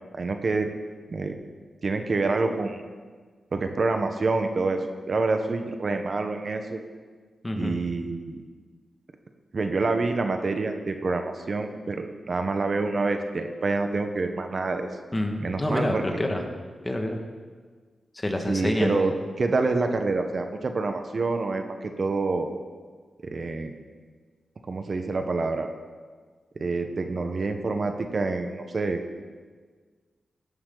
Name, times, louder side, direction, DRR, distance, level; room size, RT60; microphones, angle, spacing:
voice 1, 0.1-0.7 1.1-1.3 1.8-2.8 3.5-6.8 7.6-8.4 9.5-14.9 15.4-16.0 18.5-22.6 23.2-23.7 24.7-25.7 26.6-29.0, right 3 dB, 55° right, 6 dB, 1.1 m, -27 dB
voice 2, 7.4-7.8 15.1-16.4 16.8-17.2 18.2-19.0, left 1 dB, 20° left, 3 dB, 1.9 m, -27 dB
16.0 x 11.0 x 4.0 m, 1.5 s
cardioid pair, 70°, 0 cm